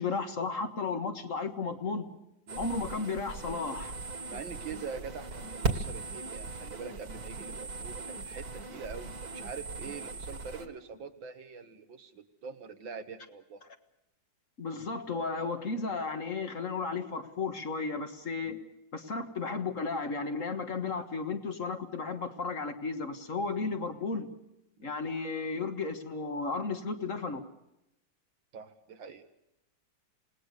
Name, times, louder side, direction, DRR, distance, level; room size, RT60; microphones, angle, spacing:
voice 1, 0.0-2.0 2.6-3.9 14.6-18.5 18.9-24.3 24.8-27.4, left 4 dB, 45° left, 6 dB, 1.8 m, -34 dB
sound 1, 2.5-10.7, right 3 dB, 55° right, 2.5 m, -38 dB
voice 2, 4.3-13.6 18.4-18.6 24.8-24.9 28.5-29.3, right 5 dB, 85° right, 8 dB, 2.2 m, -44 dB
28.0 x 19.0 x 6.7 m, 0.85 s
omnidirectional pair, 2.0 m